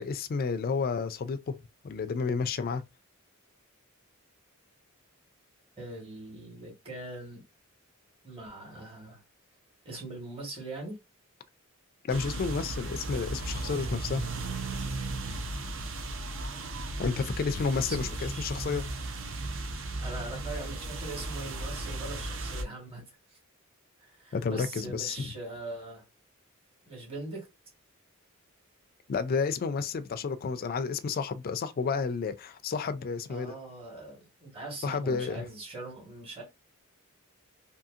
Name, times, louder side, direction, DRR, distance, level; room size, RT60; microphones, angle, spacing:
voice 1, 0.0-1.6 1.8-2.8 12.0-14.3 17.0-18.9 24.3-25.3 29.1-33.5 34.8-35.5, left 5 dB, 45° left, 0.3 m, -31 dB
voice 2, 5.8-7.4 8.2-9.2 9.8-11.0 17.8-18.5 20.0-23.0 23.3-23.4 24.0-26.0 26.9-27.5 33.3-36.4, right 2 dB, 25° right, 1.3 m, -41 dB
sound 1, 12.1-22.6, right 2 dB, 65° right, 0.6 m, -36 dB
2.7 x 2.7 x 2.4 m
head